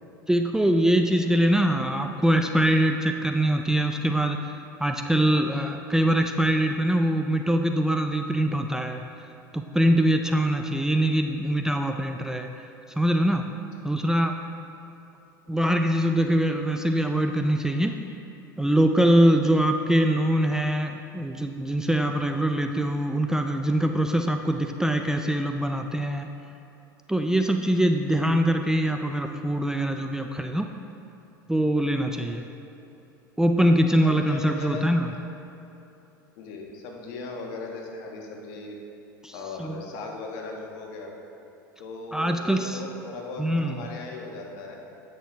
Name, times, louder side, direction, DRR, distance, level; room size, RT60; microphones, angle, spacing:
voice 1, 0.3-4.5 4.8-9.0 9.5-12.5 13.0-13.5 13.8-14.4 15.5-18.0 18.6-26.3 27.1-30.7 31.5-32.5 33.4-35.1 39.2-39.8 42.1-42.8 43.4-43.8, right 1 dB, 5° right, 5 dB, 0.4 m, -23 dB
voice 2, 32.1-32.5 34.0-34.8 35.1-35.3 36.4-38.8 39.3-41.1 41.8-44.8, left 3 dB, 60° left, 1 dB, 1.3 m, -38 dB
9.2 x 6.5 x 3.5 m, 2.8 s
hypercardioid pair, 85°, 11 cm